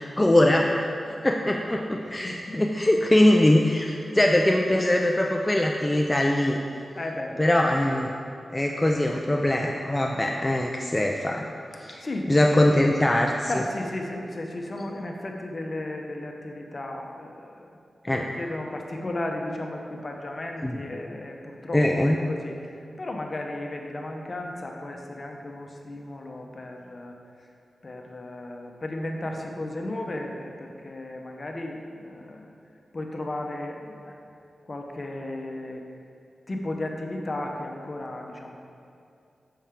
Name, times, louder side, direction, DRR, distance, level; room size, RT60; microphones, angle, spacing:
voice 1, 0.2-0.7 1.2-6.6 7.4-8.1 8.5-11.5 11.8-12.0 12.3-13.5 18.0-18.3 20.6-20.7 21.7-22.2, left 1 dB, 20° left, 1 dB, 0.4 m, -22 dB
voice 2, 1.9-2.8 7.0-7.4 11.7-12.7 13.5-17.7 18.1-27.2 27.8-32.5 32.9-34.2 34.6-35.8 36.5-38.6, left 1 dB, 45° left, 2 dB, 0.8 m, -35 dB
7.1 x 5.6 x 3.6 m, 2.5 s
cardioid pair, 60°, 0 cm